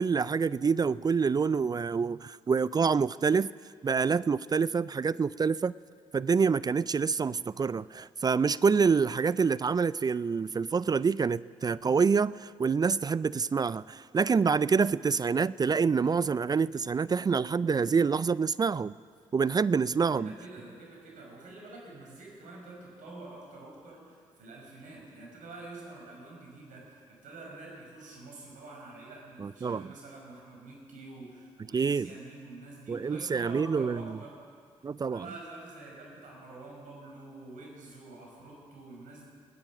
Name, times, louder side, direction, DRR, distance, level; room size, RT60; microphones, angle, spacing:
voice 1, 0.0-3.5 3.8-5.7 6.1-18.9 19.3-20.3 29.4-29.9 31.7-32.1 32.9-34.2 34.8-35.3, right 5 dB, 30° right, 19 dB, 0.3 m, -27 dB
voice 2, 20.0-34.4 35.1-39.2, right 2 dB, 70° right, -1 dB, 5.3 m, -47 dB
20.5 x 10.5 x 6.2 m, 2.1 s
hypercardioid pair, 50°, 14 cm